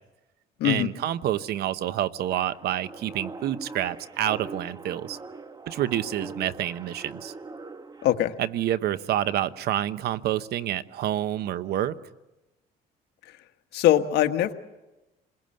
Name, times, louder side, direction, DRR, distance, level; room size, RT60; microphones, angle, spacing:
voice 1, 0.6-5.2 5.7-7.3 8.4-11.9, right 12 dB, 70° right, 14 dB, 1.0 m, -28 dB
sound 1, 2.3-8.2, right 3 dB, 25° right, 1.3 m, -41 dB
voice 2, 8.0-8.3 13.3-13.4 13.7-14.5, left 12 dB, 80° left, 7 dB, 1.4 m, -22 dB
27.5 x 21.0 x 7.7 m, 1.0 s
cardioid pair, 110°, 17 cm